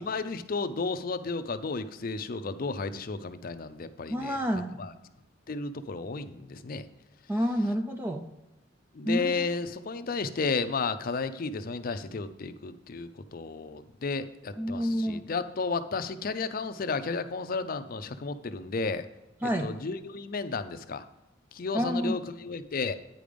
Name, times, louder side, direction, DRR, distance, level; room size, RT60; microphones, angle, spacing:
voice 1, 0.0-4.4 4.8-4.9 5.5-6.9 8.9-19.1 19.4-21.0 21.5-22.9, left 4 dB, 45° left, 10 dB, 0.5 m, -33 dB
voice 2, 4.1-4.7 7.3-8.2 9.1-9.5 14.6-15.2 19.4-19.7 21.7-22.1, equal, 10° right, 5 dB, 0.4 m, -28 dB
9.3 x 5.1 x 5.1 m, 1.0 s
head